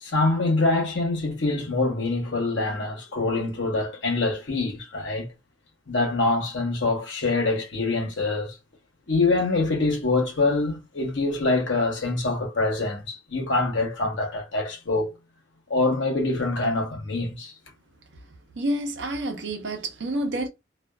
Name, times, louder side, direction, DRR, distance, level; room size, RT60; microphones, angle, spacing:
voice 1, 0.0-5.3 5.9-8.5 9.1-15.1 15.7-17.5, left 3 dB, 75° left, 0.9 m, -25 dB
voice 2, 18.6-20.5, right 1 dB, 70° right, 0.7 m, -28 dB
2.4 x 2.3 x 2.3 m
head